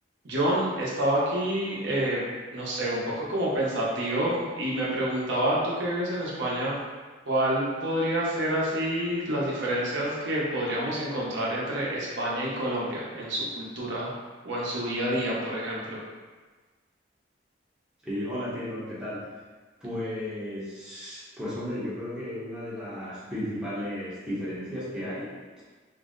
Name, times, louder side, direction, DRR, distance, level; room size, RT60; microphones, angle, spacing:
voice 1, 0.2-2.2 2.5-6.8 7.3-14.1 14.4-16.0, right 1 dB, 75° right, -5 dB, 0.7 m, -28 dB
voice 2, 18.0-19.4 19.8-25.3, left 1 dB, 5° right, -11 dB, 0.7 m, -34 dB
2.6 x 2.0 x 3.6 m, 1.4 s
head